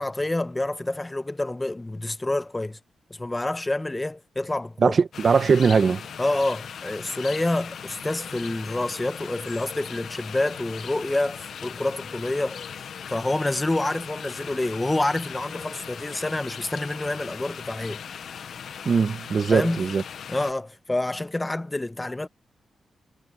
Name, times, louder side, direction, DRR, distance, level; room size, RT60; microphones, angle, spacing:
voice 1, 0.0-2.8 3.1-4.9 6.2-18.0 19.5-19.9 20.3-22.3, left 2 dB, 20° left, 1.4 m, -28 dB
voice 2, 4.8-6.0 18.8-20.0, right 5 dB, 55° right, 1.5 m, -20 dB
sound 1, 5.1-20.5, left 7 dB, 75° left, 0.9 m, -39 dB
cardioid pair, 60°, 0 cm